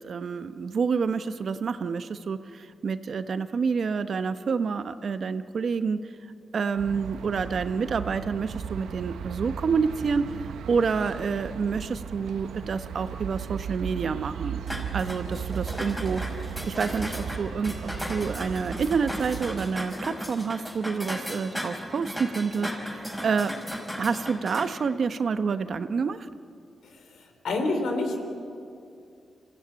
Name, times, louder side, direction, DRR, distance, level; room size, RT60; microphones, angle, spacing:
voice 1, 0.0-6.0 6.5-14.6 14.9-23.5 24.0-26.3, right 5 dB, 60° right, 11 dB, 0.9 m, -28 dB
sound 1, 6.8-19.7, right 7 dB, 90° right, 0.9 m, -36 dB
sound 2, 14.7-24.7, equal, 5° left, 4.7 m, -36 dB
voice 2, 26.9-28.2, left 2 dB, 80° left, 4 dB, 3.5 m, -28 dB
25.5 x 15.5 x 8.7 m, 2.5 s
cardioid pair, 80°, 0 cm